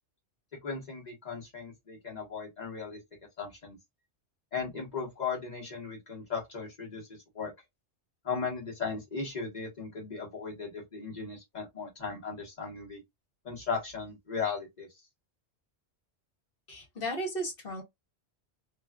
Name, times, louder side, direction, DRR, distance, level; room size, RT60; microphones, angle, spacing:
voice 1, 0.6-3.0 3.4-3.8 4.5-7.5 8.2-13.0 13.4-14.9, left 5 dB, 40° left, 1.3 m, -37 dB
voice 2, 16.7-17.8, right 1 dB, 55° left, 1.3 m, -35 dB
3.0 x 2.3 x 2.2 m
omnidirectional pair, 1.1 m